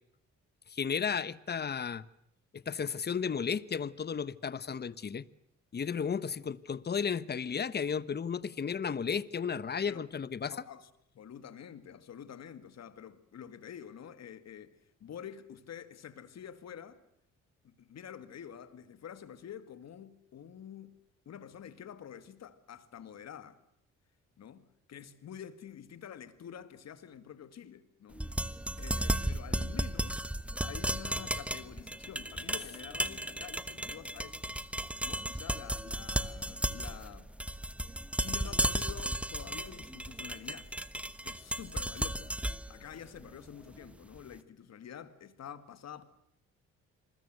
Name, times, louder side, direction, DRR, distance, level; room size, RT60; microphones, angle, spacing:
voice 1, 0.7-2.0 2.5-5.3 5.7-10.5, left 6 dB, 35° left, 1.1 m, -33 dB
voice 2, 10.5-10.9 11.1-17.0 17.6-20.9 21.3-23.6 24.4-28.2 28.8-30.2 30.6-34.5 35.0-37.3 38.2-40.8 41.2-42.3 42.7-46.0, left 8 dB, 60° left, 2.2 m, -48 dB
sound 1, 28.1-44.2, right 1 dB, 5° right, 1.2 m, -35 dB
27.5 x 21.0 x 8.0 m
cardioid pair, 90°, 30 cm